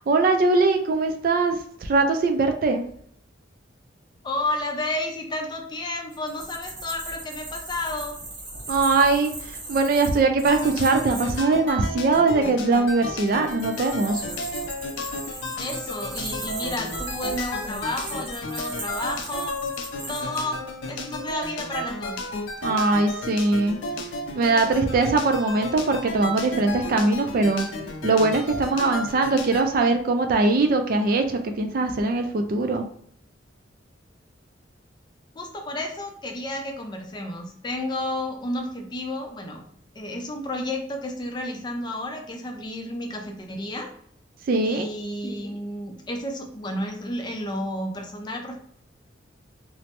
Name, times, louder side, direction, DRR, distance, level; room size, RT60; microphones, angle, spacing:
voice 1, 0.1-2.8 8.7-14.2 22.6-23.8 24.3-27.7 28.0-32.8 44.5-44.9, right 3 dB, 50° right, 6 dB, 0.3 m, -21 dB
voice 2, 4.2-8.2 15.6-19.6 20.1-20.6 20.9-22.3 35.4-39.7 39.9-43.9 44.6-48.6, left 1 dB, 25° left, 2 dB, 0.4 m, -31 dB
sound 1, 6.1-11.4 13.3-20.4, right 2 dB, 65° right, 1.1 m, -37 dB
sound 2, 10.5-29.7, left 2 dB, 85° left, 0.4 m, -33 dB
3.1 x 2.0 x 2.9 m, 0.64 s
head